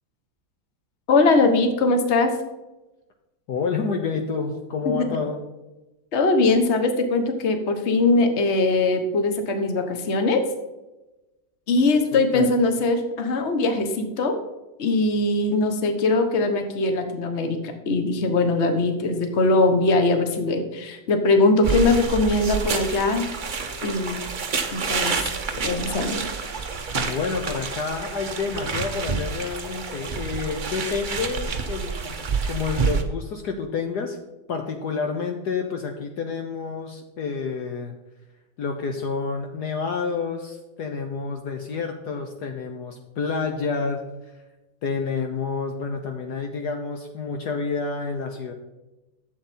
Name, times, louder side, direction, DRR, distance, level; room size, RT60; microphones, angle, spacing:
voice 1, 1.1-2.3 4.8-5.2 6.1-10.5 11.7-14.4 14.8-17.6 17.9-23.2 23.8-24.2 24.7-25.2 25.6-26.2, left 3 dB, 40° left, 6 dB, 1.3 m, -21 dB
voice 2, 3.5-5.4 12.1-12.5 26.9-32.2 32.4-34.2 34.5-37.9 38.6-44.0 44.8-48.5, left 5 dB, 60° left, 4 dB, 1.4 m, -29 dB
sound 1, 21.6-33.0, right 5 dB, 45° right, 0.6 m, -28 dB
12.0 x 7.8 x 4.3 m, 1.0 s
omnidirectional pair, 2.1 m